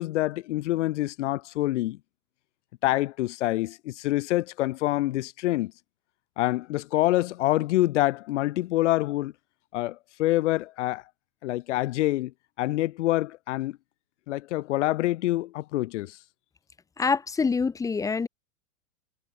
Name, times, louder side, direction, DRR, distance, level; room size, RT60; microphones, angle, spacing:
voice 1, 0.0-2.0 2.8-5.7 6.4-9.3 9.7-11.0 11.4-13.8 14.3-16.2, left 16 dB, 75° left, 1.8 m, -26 dB
voice 2, 17.0-18.3, left 5 dB, 10° left, 0.8 m, -25 dB
supercardioid pair, 145°, 36 cm